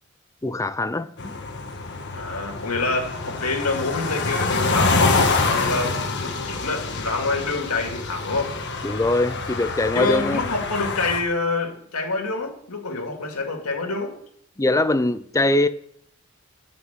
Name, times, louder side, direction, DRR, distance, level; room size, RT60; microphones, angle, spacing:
voice 1, 0.4-1.4 8.8-10.4 14.6-15.7, left 2 dB, 15° left, 0.4 m, -22 dB
sound 1, 1.2-11.2, left 3 dB, 50° left, 1.6 m, -26 dB
voice 2, 2.1-8.6 9.9-14.1, left 3 dB, 90° left, 2.3 m, -27 dB
11.0 x 5.8 x 8.1 m
head